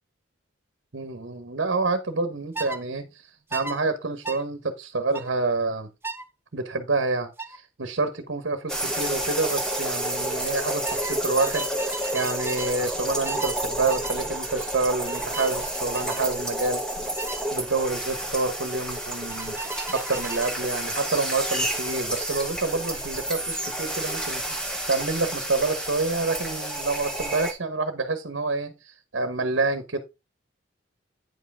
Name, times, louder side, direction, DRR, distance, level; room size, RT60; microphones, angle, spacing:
voice 1, 0.9-5.9 6.5-17.0 17.5-30.0, right 3 dB, 70° right, 1.0 m, -28 dB
sound 1, 2.5-2.8 3.5-3.8 4.2-4.4 5.1-5.3 6.0-6.3 7.4-7.6 9.0-9.3 9.6-9.9 10.8-12.8 13.2-13.6 13.9-14.2 15.1-15.5 15.9-16.2 17.2-17.4 19.3-20.6, right 3 dB, 10° right, 0.5 m, -35 dB
sound 2, 8.7-27.5, right 1 dB, 5° left, 1.3 m, -30 dB
9.3 x 5.5 x 3.6 m
head